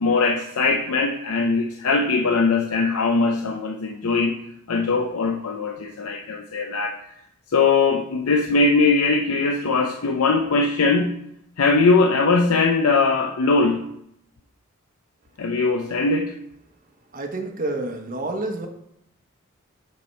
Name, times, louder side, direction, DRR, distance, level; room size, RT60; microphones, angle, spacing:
voice 1, 0.0-4.4 4.7-7.0 7.5-11.1 11.6-13.8 15.4-16.4, left 3 dB, 85° left, 3 dB, 0.6 m, -20 dB
voice 2, 17.1-18.7, right 2 dB, 40° right, 3 dB, 0.9 m, -28 dB
6.9 x 6.6 x 4.4 m, 0.75 s
head